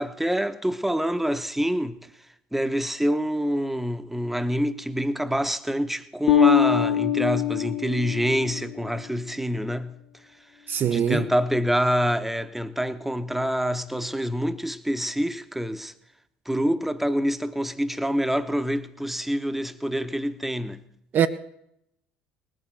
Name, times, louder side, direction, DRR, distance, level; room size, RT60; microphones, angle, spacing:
voice 1, 0.0-2.0 2.5-10.0 10.9-15.9 16.5-20.8, equal, 5° right, 1.0 m, -26 dB
Bass guitar, 6.3-8.9, left 9 dB, 60° left, 0.9 m, -22 dB
voice 2, 10.7-11.3 21.1-21.3, right 8 dB, 45° right, 0.7 m, -22 dB
19.5 x 7.6 x 6.6 m
hypercardioid pair, 65°, 5 cm